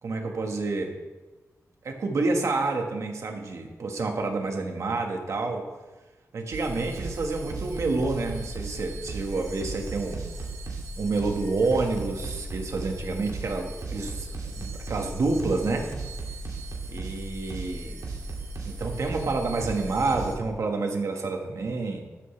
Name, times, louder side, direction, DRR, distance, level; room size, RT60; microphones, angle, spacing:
voice 1, 0.0-0.9 1.8-5.7 6.3-10.2 11.0-15.9 16.9-18.0 18.6-22.0, right 3 dB, 60° right, 3 dB, 1.7 m, -28 dB
sound 1, 6.5-20.3, right 2 dB, 85° right, 2.4 m, -36 dB
14.0 x 12.5 x 3.4 m, 1.2 s
wide cardioid pair, 170°, 6 cm